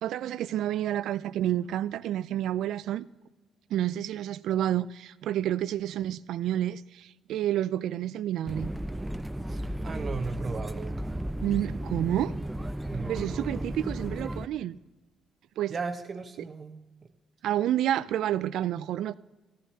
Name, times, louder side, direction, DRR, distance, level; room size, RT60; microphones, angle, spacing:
voice 1, 0.0-3.0 3.7-8.7 11.4-12.3 13.1-14.8 15.6-15.7 17.4-19.1, right 12 dB, 80° right, 0.3 m, -29 dB
sound 1, 8.5-14.5, right 1 dB, 10° right, 0.5 m, -34 dB
voice 2, 9.5-11.1 12.9-13.7 15.7-16.8, right 4 dB, 45° right, 0.9 m, -36 dB
15.0 x 11.0 x 2.8 m
cardioid pair, 80°, 0 cm